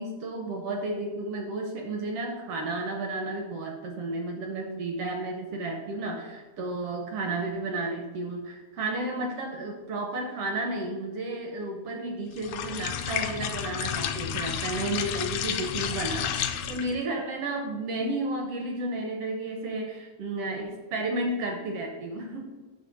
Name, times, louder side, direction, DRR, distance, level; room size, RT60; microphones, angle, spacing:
voice 1, 0.0-22.5, right 2 dB, 75° right, 2 dB, 1.4 m, -32 dB
sound 1, 12.4-17.0, left 8 dB, 80° left, 1.8 m, -31 dB
7.8 x 3.2 x 5.7 m, 1.3 s
omnidirectional pair, 3.4 m